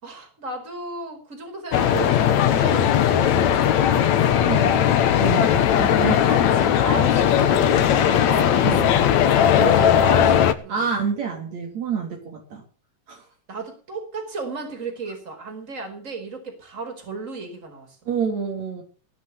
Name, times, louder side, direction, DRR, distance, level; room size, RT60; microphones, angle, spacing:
voice 1, 0.0-4.2 5.8-8.6 9.5-10.9 13.5-18.0, right 4 dB, 20° right, 4 dB, 4.8 m, -34 dB
sound 1, 1.7-10.5, left 9 dB, 65° left, 2.4 m, -18 dB
voice 2, 4.5-4.9 5.2-6.2 8.6-8.9 10.7-12.6 13.1-13.2 18.1-18.8, right 6 dB, 60° right, 2 dB, 4.3 m, -28 dB
20.5 x 6.8 x 8.2 m, 0.39 s
omnidirectional pair, 3.7 m